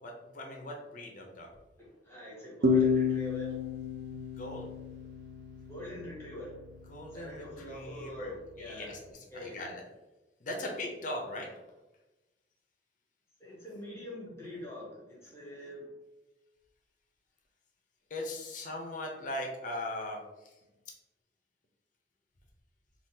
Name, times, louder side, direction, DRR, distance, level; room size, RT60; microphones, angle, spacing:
voice 1, 0.0-1.5 4.3-4.7 6.9-8.3 8.6-9.8 10.4-11.5 18.1-20.5, left 1 dB, 45° left, 1 dB, 0.5 m, -39 dB
voice 2, 1.8-3.6 5.7-6.5 7.1-8.9 9.3-9.6 13.4-15.9, equal, 15° left, -6 dB, 1.0 m, -44 dB
sound 1, 2.6-6.0, left 4 dB, 60° right, 0.4 m, -30 dB
3.6 x 2.3 x 2.7 m, 1.1 s
head